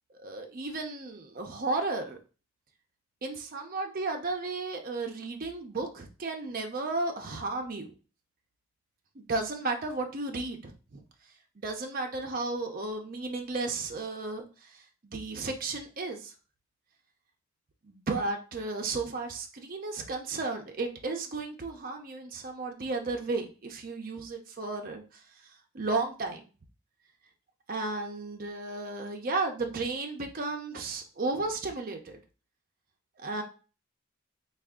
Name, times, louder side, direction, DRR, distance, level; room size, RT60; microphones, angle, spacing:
voice 1, 0.1-2.2 3.2-7.9 9.1-11.0 11.6-16.3 17.8-26.4 27.7-32.2 33.2-33.4, right 3 dB, 45° right, 3 dB, 0.6 m, -34 dB
3.4 x 2.4 x 3.6 m, 0.35 s
head